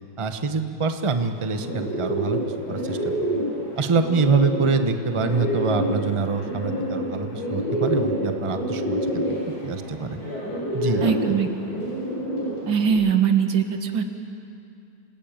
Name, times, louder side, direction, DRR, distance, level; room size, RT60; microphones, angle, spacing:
voice 1, 0.2-2.4 2.7-3.1 3.8-9.2 9.6-10.2 10.7-11.1, right 4 dB, 20° right, 7 dB, 0.9 m, -25 dB
Bird, 1.3-12.9, equal, 50° left, 7.7 m, -28 dB
voice 2, 11.0-11.5 12.7-14.0, right 7 dB, 90° right, 6 dB, 2.4 m, -21 dB
28.0 x 19.0 x 9.0 m, 2.5 s
omnidirectional pair, 2.0 m